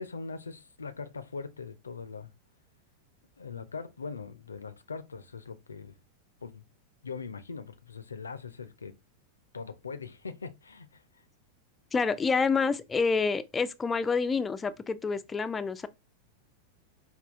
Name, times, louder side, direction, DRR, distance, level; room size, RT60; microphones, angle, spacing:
voice 1, 0.0-2.3 3.4-6.0 6.4-6.6 7.0-8.9 9.5-11.0, left 5 dB, 75° left, 0.5 m, -41 dB
voice 2, 11.9-15.9, left 4 dB, 15° left, 0.4 m, -28 dB
5.3 x 2.3 x 3.5 m
figure-of-eight pair, 90°, 0 cm